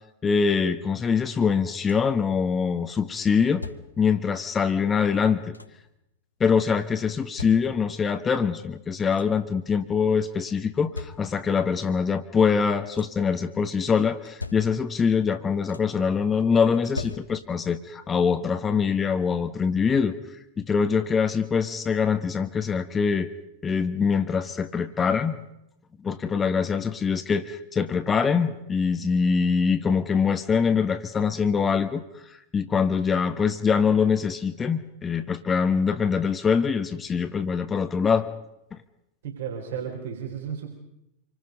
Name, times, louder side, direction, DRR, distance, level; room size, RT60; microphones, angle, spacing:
voice 1, 0.2-3.6 4.0-5.5 6.4-20.2 20.6-23.3 23.6-25.4 26.0-32.0 32.5-38.3 38.7-38.8, left 6 dB, 20° left, 9 dB, 1.2 m, -24 dB
sound 1, 1.4-2.2 3.2-4.2 5.1-6.0 6.9-8.1 8.6-8.7 8.9-9.6 10.5-11.6 12.6-13.3 14.1-15.1 15.4-16.1 16.7-17.7 19.0-19.1 19.6-19.8, left 3 dB, 80° left, 1.0 m, -42 dB
voice 2, 39.2-40.7, right 7 dB, 60° right, 2 dB, 4.2 m, -33 dB
27.0 x 25.0 x 5.3 m, 0.84 s
figure-of-eight pair, 90°, 0 cm